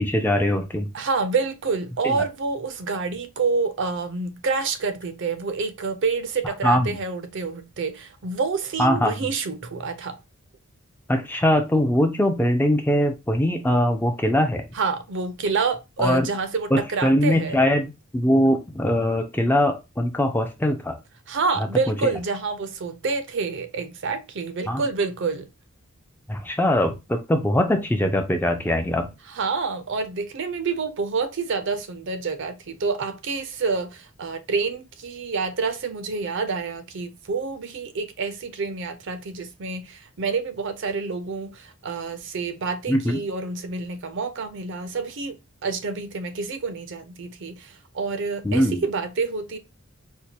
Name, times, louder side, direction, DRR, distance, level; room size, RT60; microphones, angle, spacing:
voice 1, 0.0-0.9 2.0-2.3 6.6-7.0 8.8-9.1 11.1-14.7 16.0-16.3 16.7-21.0 21.9-22.1 24.7-24.8 26.3-29.1 42.9-43.2 48.4-48.8, left 1 dB, 10° left, 0.4 m, -22 dB
voice 2, 0.9-10.2 14.7-17.6 21.3-25.5 29.3-49.6, right 4 dB, 55° right, 0.5 m, -28 dB
4.4 x 2.2 x 2.7 m
head